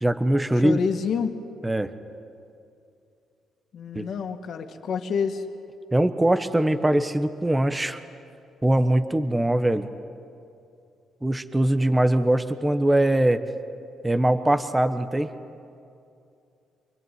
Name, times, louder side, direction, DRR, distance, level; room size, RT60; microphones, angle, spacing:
voice 1, 0.0-0.8 1.6-1.9 3.9-4.1 5.9-8.0 8.6-9.9 11.2-13.4 14.0-15.3, right 1 dB, 10° right, 10 dB, 1.3 m, -22 dB
voice 2, 0.5-1.4 3.7-5.4, left 6 dB, 65° left, 6 dB, 2.2 m, -28 dB
26.5 x 21.5 x 9.6 m, 2.6 s
cardioid pair, 90°, 0 cm